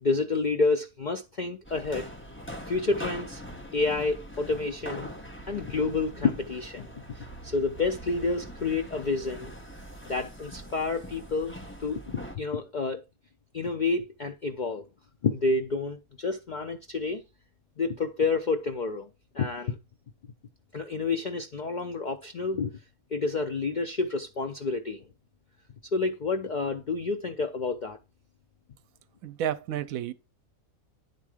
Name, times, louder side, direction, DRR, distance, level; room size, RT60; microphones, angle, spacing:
voice 1, 0.0-2.1 2.7-3.4 3.7-5.1 5.5-9.5 10.0-11.5 11.8-12.0 12.3-13.0 13.5-14.8 15.2-17.2 17.8-19.1 19.3-19.8 20.7-22.7 23.1-25.1 25.9-28.0, left 3 dB, 75° left, 0.4 m, -29 dB
sound 1, 1.6-12.4, equal, 10° left, 1.0 m, -42 dB
voice 2, 29.2-30.1, right 10 dB, 80° right, 1.0 m, -31 dB
9.4 x 3.6 x 4.9 m
omnidirectional pair, 1.5 m